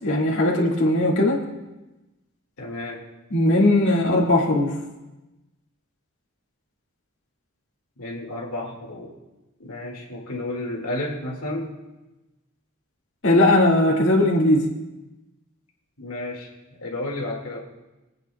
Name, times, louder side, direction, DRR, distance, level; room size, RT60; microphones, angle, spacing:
voice 1, 0.0-1.4 3.3-4.8 13.2-14.7, left 1 dB, 60° left, -3 dB, 2.0 m, -19 dB
voice 2, 2.6-3.1 8.0-9.1 9.6-11.7 16.0-16.5 16.8-17.6, left 1 dB, 85° left, -1 dB, 2.0 m, -32 dB
26.5 x 8.8 x 2.3 m, 1.0 s
head